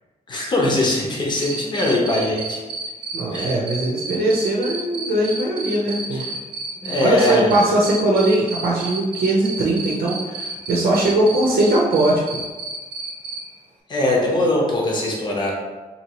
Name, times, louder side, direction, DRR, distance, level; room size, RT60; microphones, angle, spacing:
voice 1, 0.3-2.6 3.3-3.5 6.1-6.2 6.8-7.5 13.9-15.5, left 2 dB, 30° left, -2 dB, 0.8 m, -21 dB
Cricket, 1.4-13.4, right 3 dB, 35° right, 0.8 m, -30 dB
voice 2, 3.1-6.3 7.0-12.4, right 1 dB, 90° right, -3 dB, 0.7 m, -20 dB
4.2 x 2.9 x 2.9 m, 1.2 s
wide cardioid pair, 170°, 15 cm